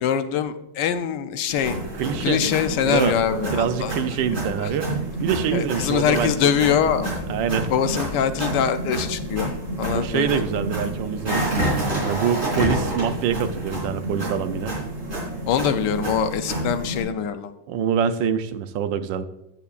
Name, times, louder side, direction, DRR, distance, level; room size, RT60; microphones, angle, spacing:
voice 1, 0.0-1.8 2.2-3.9 4.6-4.7 5.5-7.1 7.7-10.4 15.5-17.5, left 8 dB, 70° left, 10 dB, 1.2 m, -23 dB
sound 1, 1.5-17.0, right 1 dB, 35° right, 3.7 m, -28 dB
voice 2, 2.0-2.4 2.8-3.2 3.5-4.9 5.2-6.5 7.3-7.7 9.9-14.7 17.7-19.3, right 8 dB, 75° right, 11 dB, 1.3 m, -25 dB
15.0 x 7.0 x 2.5 m, 0.87 s
omnidirectional pair, 2.1 m